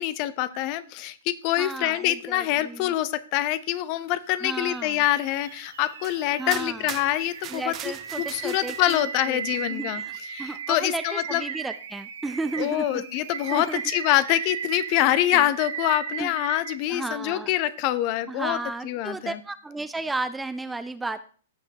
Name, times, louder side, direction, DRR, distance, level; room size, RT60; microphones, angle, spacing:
voice 1, 0.0-10.0 10.3-11.4 12.6-18.6 18.8-19.4, left 14 dB, 40° left, 15 dB, 0.7 m, -25 dB
sound 1, 0.5-0.6 3.9-16.8, right 7 dB, 75° right, 1.4 m, -37 dB
voice 2, 1.6-2.9 4.4-5.0 6.4-6.9 7.5-9.4 9.7-13.0 13.5-13.8 15.3-15.5 16.2-16.3 16.9-17.5 18.3-21.2, right 3 dB, 5° right, 12 dB, 0.5 m, -33 dB
sound 2, 5.3-5.4 6.0-6.2 6.5-9.0, right 11 dB, 30° right, 0.8 m, -40 dB
16.0 x 5.8 x 2.9 m, 0.41 s
hypercardioid pair, 120°, 0 cm